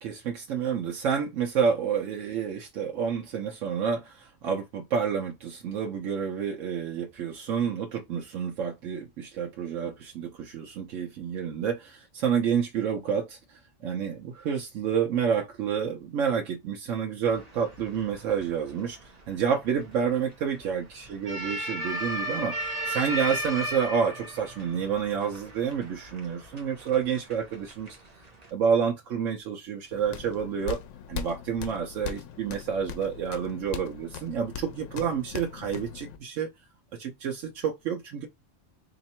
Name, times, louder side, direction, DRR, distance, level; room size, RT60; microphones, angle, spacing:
voice 1, 0.0-28.0 28.5-30.8 31.1-36.5 37.0-38.3, right 7 dB, 90° right, 1.0 m, -29 dB
sound 1, 17.3-28.5, right 1 dB, 35° right, 0.9 m, -37 dB
sound 2, 29.9-36.2, left 8 dB, 75° left, 0.9 m, -40 dB
3.1 x 2.9 x 4.3 m
omnidirectional pair, 1.3 m